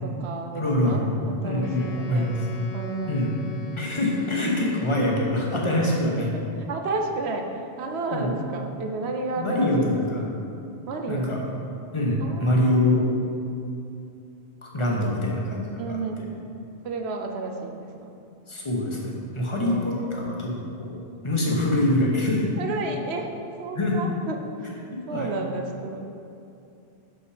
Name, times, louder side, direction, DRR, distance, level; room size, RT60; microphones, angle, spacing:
voice 1, 0.0-2.3 2.7-3.5 4.4-4.7 6.7-10.3 10.9-11.2 12.2-12.7 14.8-15.2 15.5-16.3 16.8-18.1 19.6-20.5 22.6-23.3 23.6-24.5 25.1-26.1, right 3 dB, 80° right, 3 dB, 1.0 m, -32 dB
voice 2, 0.5-1.1 1.4-2.6 3.1-3.3 3.7-6.3 8.1-8.3 9.4-10.3 11.1-11.4 11.9-13.0 14.6-16.2 18.5-20.5 20.8-21.0 21.2-22.4 23.7-24.0 25.1-25.4, left 1 dB, 30° left, -3 dB, 1.1 m, -24 dB
Wind instrument woodwind instrument, 1.6-5.7, left 3 dB, 45° left, 0.6 m, -41 dB
6.1 x 5.5 x 5.0 m, 2.7 s
omnidirectional pair, 1.1 m